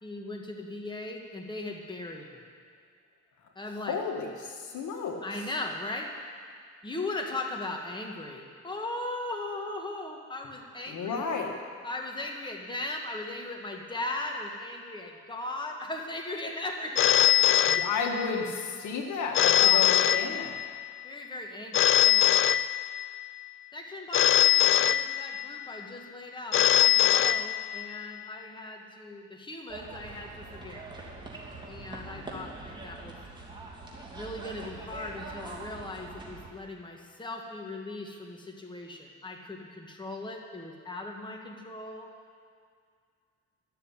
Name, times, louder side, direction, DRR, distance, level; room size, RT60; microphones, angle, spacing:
voice 1, 0.0-2.5 3.6-4.0 5.2-6.1 6.8-11.2 11.8-17.9 19.6-19.9 21.0-22.3 23.7-30.9 31.7-33.2 34.1-42.1, left 2 dB, 15° left, 1 dB, 1.8 m, -38 dB
voice 2, 3.7-5.2 10.9-11.5 17.7-20.6 32.1-32.5, left 5 dB, 75° left, 2 dB, 1.8 m, -33 dB
Telephone, 17.0-18.5 19.3-20.8 21.7-23.2 24.1-25.6 26.5-28.0, left 12 dB, 45° left, 0.4 m, -23 dB
sound 1, 29.7-36.5, right 3 dB, 15° right, 2.8 m, -43 dB
12.5 x 7.0 x 9.8 m, 2.1 s
cardioid pair, 90°, 30 cm